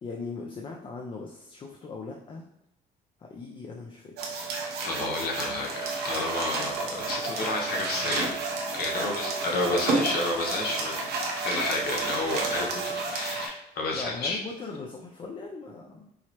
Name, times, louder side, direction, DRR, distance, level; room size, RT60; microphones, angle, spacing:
voice 1, 0.0-2.4 3.2-4.4 9.0-9.9 13.9-16.1, left 4 dB, 30° left, 1 dB, 0.4 m, -39 dB
sound 1, 4.2-13.5, right 3 dB, 75° right, 0.8 m, -31 dB
voice 2, 4.8-8.4 8.7-11.2 11.4-12.8 13.1-14.4, left 2 dB, 65° left, -1 dB, 0.9 m, -30 dB
4.7 x 2.0 x 2.9 m, 0.80 s
cardioid pair, 110°, 17 cm